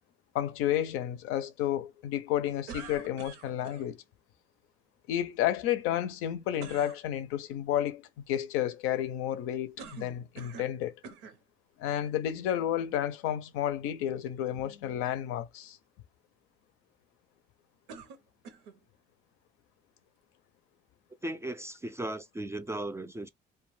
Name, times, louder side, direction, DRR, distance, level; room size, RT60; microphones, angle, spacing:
voice 1, 0.3-4.0 5.1-10.9 11.8-15.8, left 11 dB, 80° left, 0.5 m, -31 dB
sound 1, 2.7-3.9 6.6-7.0 9.8-10.8 11.0-11.4 12.2-12.3 17.9-18.8, right 6 dB, 85° right, 0.7 m, -46 dB
voice 2, 21.2-23.3, right 1 dB, 15° right, 0.3 m, -36 dB
2.2 x 2.1 x 3.1 m
supercardioid pair, 75°, 21 cm